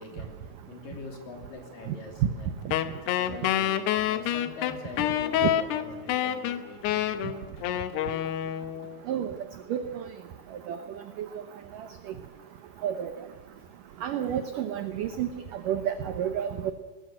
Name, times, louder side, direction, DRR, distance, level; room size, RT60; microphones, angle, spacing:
voice 1, 0.0-2.5 3.0-7.5, left 3 dB, 55° left, 3 dB, 4.3 m, -44 dB
Wind instrument woodwind instrument, 2.7-9.0, left 11 dB, 75° left, 2.9 m, -27 dB
voice 2, 9.7-10.0 10.7-10.8 11.2-11.4 11.7-11.9 12.8-13.2 14.0-16.7, right 10 dB, 75° right, 9 dB, 1.9 m, -30 dB
20.5 x 20.0 x 7.6 m, 1.3 s
omnidirectional pair, 5.0 m